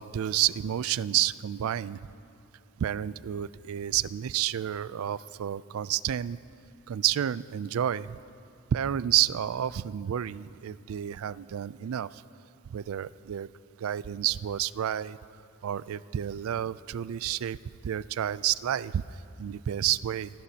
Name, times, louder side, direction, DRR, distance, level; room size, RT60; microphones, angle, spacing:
voice 1, 0.0-2.0 2.8-6.4 6.9-8.2 8.7-12.2 12.7-13.5 13.8-15.2 15.6-17.6 17.8-19.0 19.4-20.3, right 11 dB, 85° right, 19 dB, 0.3 m, -30 dB
26.5 x 17.5 x 2.8 m, 2.7 s
head